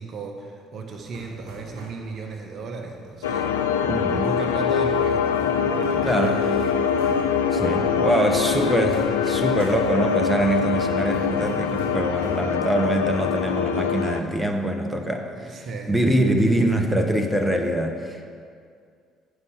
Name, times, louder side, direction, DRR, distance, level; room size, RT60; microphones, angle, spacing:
voice 1, 0.0-3.7 4.2-6.4 15.3-15.9, right 4 dB, 50° right, 3 dB, 0.9 m, -35 dB
sound 1, 0.9-14.1, right 2 dB, 75° right, 1.2 m, -45 dB
sound 2, 3.2-14.2, left 7 dB, 80° left, 0.4 m, -24 dB
voice 2, 3.9-4.3 6.0-6.5 7.5-18.3, right 1 dB, 5° right, 3 dB, 1.0 m, -24 dB
9.7 x 5.5 x 5.3 m, 2.2 s
hypercardioid pair, 50°, 0 cm